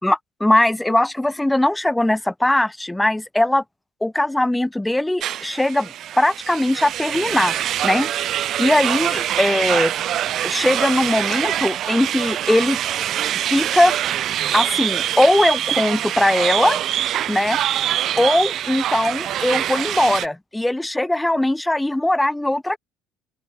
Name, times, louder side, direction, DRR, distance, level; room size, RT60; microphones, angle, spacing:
voice 1, 0.0-3.6 4.0-9.9 10.4-12.8 13.4-13.9 14.5-16.8 17.3-17.6 18.2-22.8, left 1 dB, 10° left, 0.7 m, -20 dB
sound 1, 5.2-20.3, right 11 dB, 50° right, 2.4 m, -24 dB
open air
figure-of-eight pair, 55°, 0 cm